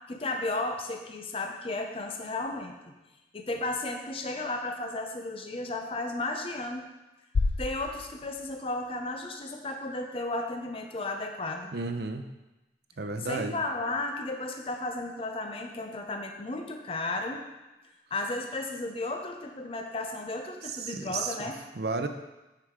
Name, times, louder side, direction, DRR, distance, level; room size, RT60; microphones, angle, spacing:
voice 1, 0.1-2.7 3.3-6.9 7.6-11.7 13.2-17.4 18.1-21.6, left 2 dB, 30° left, 3 dB, 0.6 m, -34 dB
sound 1, 7.3-9.4, left 3 dB, 90° left, 0.5 m, -32 dB
voice 2, 11.7-12.2 13.0-13.5 20.8-21.5 21.8-22.1, right 3 dB, 65° right, 6 dB, 0.6 m, -32 dB
9.3 x 4.8 x 3.7 m, 1.0 s
head